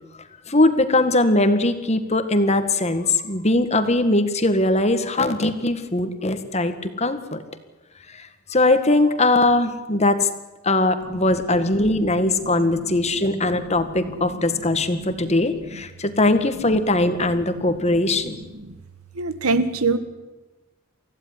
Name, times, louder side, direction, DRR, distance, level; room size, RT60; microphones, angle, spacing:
voice 1, 0.5-7.4 8.1-10.3 10.6-18.4, left 2 dB, 30° left, 9 dB, 1.8 m, -20 dB
voice 2, 19.2-20.0, right 3 dB, 90° right, 11 dB, 1.8 m, -22 dB
25.0 x 15.5 x 9.9 m, 1.1 s
head